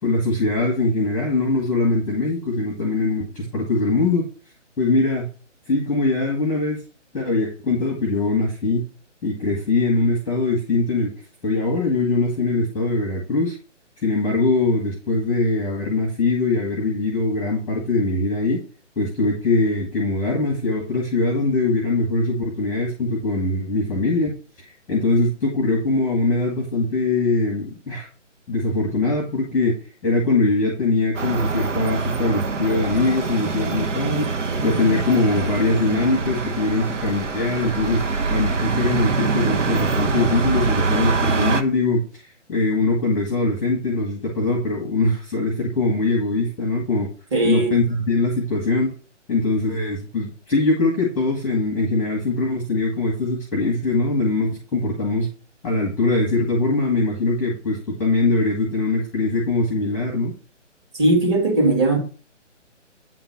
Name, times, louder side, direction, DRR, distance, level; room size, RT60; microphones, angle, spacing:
voice 1, 0.0-4.3 4.8-5.3 5.7-6.8 7.1-8.8 9.2-11.1 11.4-13.6 14.0-18.6 19.0-28.1 28.5-29.8 30.0-34.3 34.6-38.0 38.3-47.1 47.4-48.9 49.3-55.3 55.6-60.3, left 2 dB, 5° left, 1.2 m, -22 dB
sound 1, 31.1-41.6, right 4 dB, 75° right, 1.2 m, -24 dB
voice 2, 47.3-47.8 60.9-62.0, right 2 dB, 20° right, 2.3 m, -18 dB
9.0 x 3.9 x 5.7 m
hypercardioid pair, 160°, 37 cm